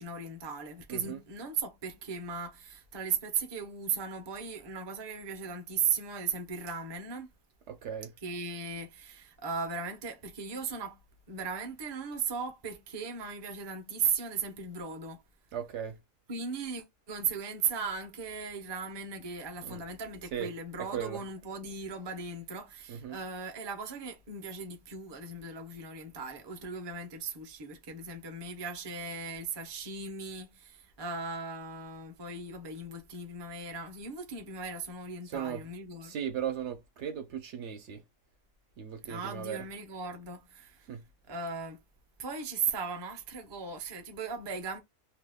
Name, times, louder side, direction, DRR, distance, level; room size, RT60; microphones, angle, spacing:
voice 1, 0.0-7.3 8.2-11.0 11.3-15.2 16.3-36.1 39.0-40.9 41.3-41.8 42.2-44.8, right 5 dB, 35° right, 0.4 m, -37 dB
voice 2, 0.9-1.2 7.7-8.1 15.5-16.0 19.6-19.8 20.3-20.5 20.8-21.2 22.9-23.2 35.2-35.6 36.0-38.0 38.8-39.6 40.9-41.0, right 8 dB, 70° right, 0.9 m, -37 dB
2.8 x 2.2 x 3.4 m
omnidirectional pair, 1.3 m